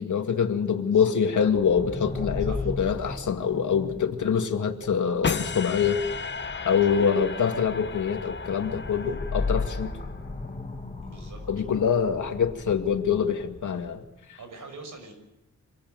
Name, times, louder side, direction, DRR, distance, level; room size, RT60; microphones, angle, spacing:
voice 1, 0.0-6.0 6.6-10.0 11.5-14.0 14.3-14.4, left 7 dB, 75° left, 5 dB, 2.2 m, -25 dB
sound 1, 1.5-14.0, left 3 dB, 20° left, 3.6 m, -36 dB
sound 2, 5.2-10.4, left 5 dB, 40° left, 0.8 m, -34 dB
voice 2, 11.0-11.4 14.4-15.1, right 3 dB, 90° right, 5 dB, 6.0 m, -44 dB
26.0 x 19.5 x 7.9 m, 0.93 s
wide cardioid pair, 180°, 30 cm